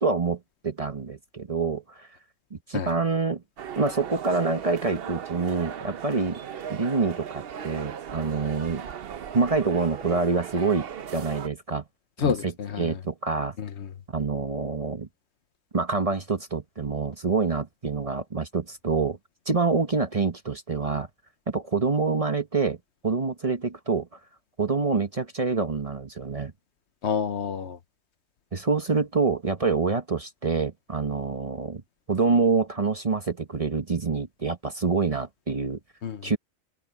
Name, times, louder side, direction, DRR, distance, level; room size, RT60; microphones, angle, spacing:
voice 1, 0.0-2.1 2.5-3.4 3.8-6.4 6.7-8.8 9.3-11.8 12.2-12.5 12.8-13.6 14.1-15.1 15.7-19.2 19.5-21.1 21.5-22.8 23.0-24.1 24.6-26.5 28.5-31.8 32.1-35.8 36.2-36.4, right 4 dB, 30° right, 1.0 m, -26 dB
sound 1, 3.6-11.5, right 8 dB, 55° right, 0.9 m, -37 dB
voice 2, 12.2-13.0 13.6-13.9 27.0-27.8 36.0-36.3, left 7 dB, 65° left, 1.1 m, -29 dB
omnidirectional pair, 1.3 m